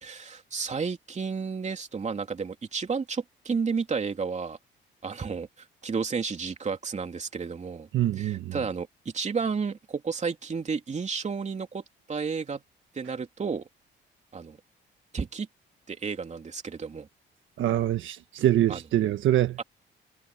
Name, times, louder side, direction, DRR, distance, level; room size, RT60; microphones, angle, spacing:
voice 1, 0.0-4.6 5.0-7.9 8.2-12.6 12.9-13.7 14.3-14.6 15.1-15.5 15.9-17.1 18.7-18.8 19.6-19.7, right 5 dB, 35° right, 3.1 m, -32 dB
voice 2, 7.9-8.5 17.6-19.6, right 12 dB, 75° right, 1.4 m, -24 dB
cardioid pair, 90°, 20 cm